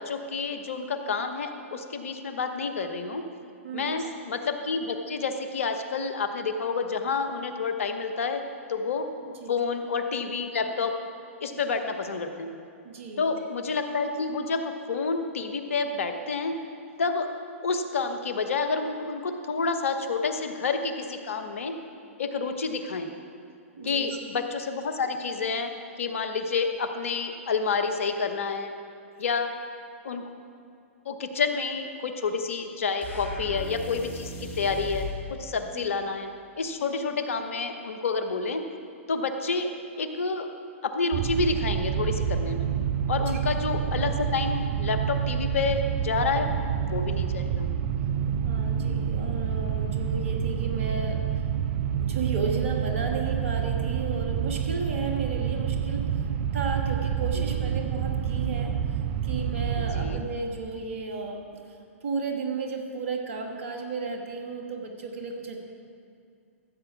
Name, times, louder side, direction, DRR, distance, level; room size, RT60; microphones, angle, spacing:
voice 1, 0.0-3.3 3.7-8.4 8.7-9.1 9.5-11.0 11.4-12.5 13.2-16.5 17.0-17.3 17.6-21.8 22.2-23.1 23.8-25.7 26.0-28.7 29.2-29.5 30.0-30.3 31.0-36.3 36.6-38.6 39.1-39.7 40.0-40.5 40.8-42.7 43.1-46.6 46.9-47.7 57.3-57.7 59.8-60.2, left 4 dB, 70° left, 7 dB, 1.0 m, -29 dB
voice 2, 3.6-4.0 9.2-9.5 12.8-13.3 23.8-24.2 35.7-35.8 43.1-43.4 48.4-51.2 52.0-56.1 56.5-58.7 59.2-61.6 62.0-65.6, right 4 dB, 65° right, 2 dB, 1.6 m, -33 dB
sound 1, 33.0-35.2, left 2 dB, 20° left, 2.3 m, -36 dB
sound 2, 41.1-60.2, right 8 dB, 50° right, 0.6 m, -28 dB
15.0 x 7.8 x 4.7 m, 2.4 s
hypercardioid pair, 115°, 7 cm